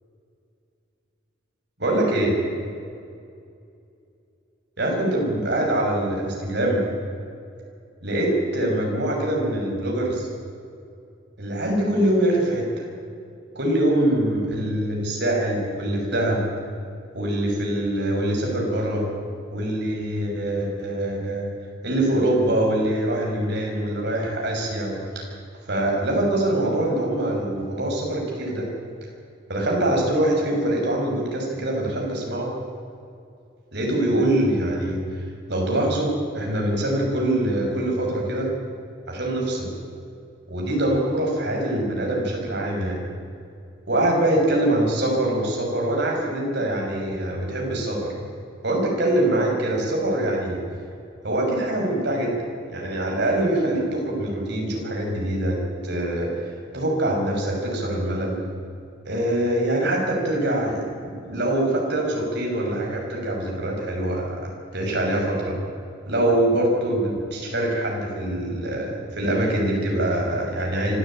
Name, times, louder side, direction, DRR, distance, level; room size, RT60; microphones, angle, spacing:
voice 1, 1.8-2.4 4.8-6.9 8.0-10.3 11.4-12.9 13.5-16.5 17.1-19.1 19.5-21.5 21.8-25.2 25.7-28.7 29.5-32.5 33.7-35.2 35.5-38.5 39.1-39.7 40.5-43.0 43.9-48.1 48.6-50.6 51.2-52.4 52.7-58.4 59.0-64.4 64.7-65.6 66.1-71.0, right 1 dB, 60° right, -1 dB, 6.5 m, -24 dB
25.0 x 13.5 x 8.9 m, 2.5 s
head